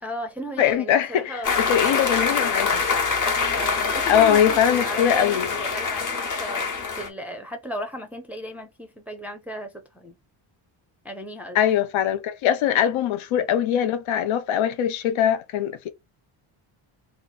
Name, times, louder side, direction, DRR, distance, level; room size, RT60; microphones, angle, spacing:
voice 1, 0.0-1.6 3.5-6.7 7.0-10.2 11.0-11.6, equal, 5° right, 0.5 m, -35 dB
voice 2, 0.6-2.8 4.1-5.5 11.5-15.9, left 10 dB, 70° left, 0.7 m, -22 dB
sound 1, 1.4-7.1, left 5 dB, 40° left, 1.0 m, -25 dB
2.9 x 2.5 x 4.0 m
cardioid pair, 130°, 50 cm